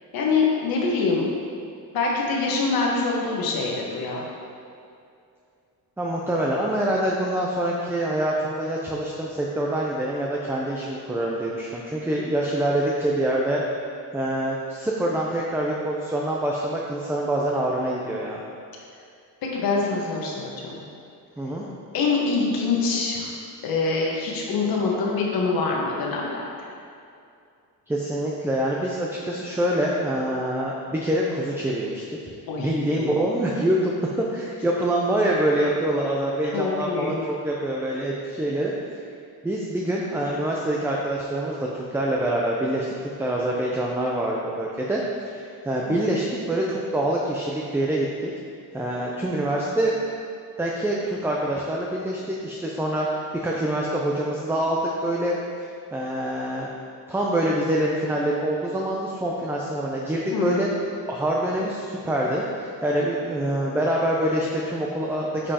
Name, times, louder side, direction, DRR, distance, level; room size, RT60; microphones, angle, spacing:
voice 1, 0.1-1.2 1.9-4.3 19.4-20.8 21.9-23.3 23.6-26.4 32.5-33.2 36.4-37.2 45.9-46.0 60.3-60.6, left 4 dB, 70° left, -2 dB, 1.4 m, -25 dB
voice 2, 6.0-13.6 14.1-18.4 21.4-21.6 27.9-32.0 32.6-38.7 39.4-48.3 48.7-49.9 50.6-55.4 55.9-56.7 57.1-60.7 61.1-65.5, right 1 dB, 5° right, -3 dB, 0.5 m, -25 dB
8.7 x 5.3 x 2.9 m, 2.4 s
cardioid pair, 125°, 37 cm